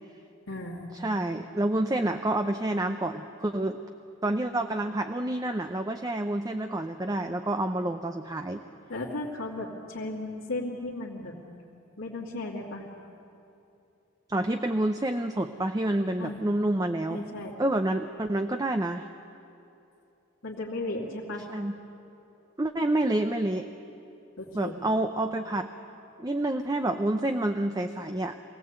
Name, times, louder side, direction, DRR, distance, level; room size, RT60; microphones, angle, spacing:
voice 1, 0.5-0.9 8.9-11.4 12.0-12.9 16.2-16.5 17.1-17.5 20.4-21.5 24.4-24.8, left 2 dB, 85° left, -4 dB, 2.6 m, -35 dB
voice 2, 1.0-3.8 4.2-8.6 14.3-17.2 17.6-19.1 21.5-21.7 22.6-23.7 24.5-25.7 26.2-28.3, right 1 dB, 20° right, 7 dB, 0.6 m, -28 dB
24.0 x 17.0 x 8.1 m, 2.8 s
head